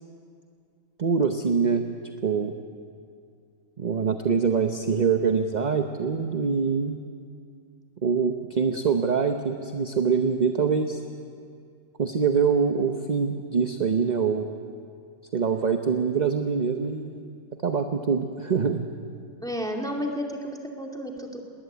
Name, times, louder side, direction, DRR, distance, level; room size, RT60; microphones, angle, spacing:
voice 1, 1.0-1.9 2.2-2.5 3.8-7.0 8.0-11.0 12.0-14.5 15.3-17.3 17.6-18.9, right 5 dB, 35° right, 6 dB, 0.9 m, -24 dB
voice 2, 19.4-21.4, equal, 5° left, 0 dB, 2.4 m, -32 dB
20.5 x 20.0 x 8.1 m, 2.3 s
omnidirectional pair, 1.5 m